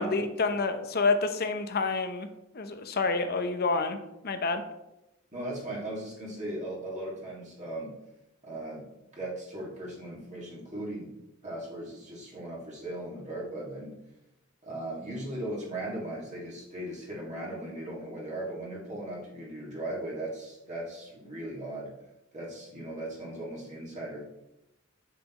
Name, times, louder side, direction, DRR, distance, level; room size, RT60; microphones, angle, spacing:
voice 1, 0.0-2.3 2.5-4.0 4.2-4.6, left 3 dB, 50° left, 8 dB, 0.8 m, -28 dB
voice 2, 5.3-7.9 8.4-11.1 11.4-14.0 14.6-21.9 22.3-24.3, right 1 dB, 35° right, -5 dB, 2.1 m, -38 dB
7.7 x 6.9 x 3.0 m, 0.91 s
head